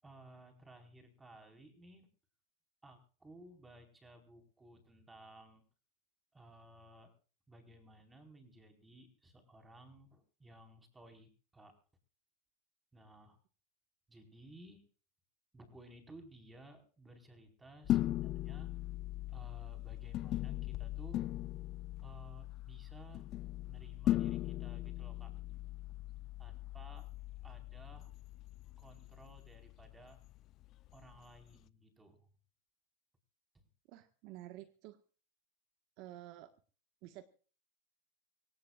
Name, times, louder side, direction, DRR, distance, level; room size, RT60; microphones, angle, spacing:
voice 1, 0.0-2.1 2.8-5.6 6.3-7.1 7.5-11.7 12.9-13.4 14.1-14.8 15.5-18.7 19.3-21.2 22.0-23.3 23.6-25.4 26.4-27.1 27.4-28.1 28.8-30.2 30.9-32.3 33.5-33.7, right 1 dB, 10° right, 4 dB, 4.8 m, -57 dB
sound 1, 17.8-31.5, left 14 dB, 40° left, 0.6 m, -39 dB
voice 2, 33.9-35.0 36.0-36.5 37.0-37.2, right 15 dB, 55° right, 8 dB, 1.5 m, -50 dB
25.0 x 17.5 x 2.5 m, 0.39 s
supercardioid pair, 125°, 0 cm